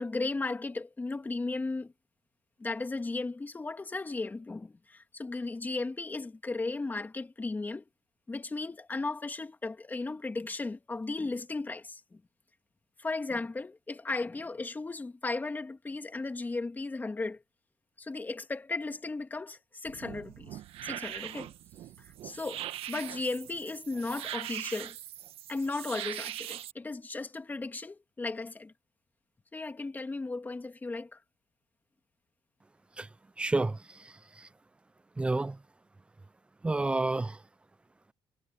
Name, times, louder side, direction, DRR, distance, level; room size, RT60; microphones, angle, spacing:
voice 1, 0.0-1.9 2.6-7.8 8.3-12.2 13.0-17.4 18.0-21.5 22.2-24.9 25.5-28.7 29.5-31.2, left 3 dB, 20° left, 2.7 m, -35 dB
sound 1, 19.9-26.7, right 12 dB, 85° right, 1.4 m, -41 dB
voice 2, 33.4-34.5 35.2-35.6 36.6-37.4, right 2 dB, 10° right, 0.3 m, -30 dB
cardioid pair, 135°, 9 cm